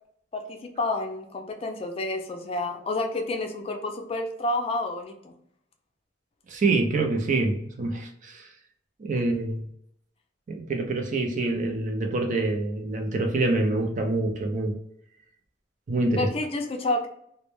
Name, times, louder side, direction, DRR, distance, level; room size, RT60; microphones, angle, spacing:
voice 1, 0.3-5.3 16.2-17.1, left 2 dB, 30° left, 3 dB, 0.4 m, -29 dB
voice 2, 6.5-8.5 9.0-9.6 10.5-14.7 15.9-16.3, right 2 dB, 45° right, 3 dB, 0.4 m, -26 dB
2.1 x 2.1 x 3.0 m, 0.70 s
head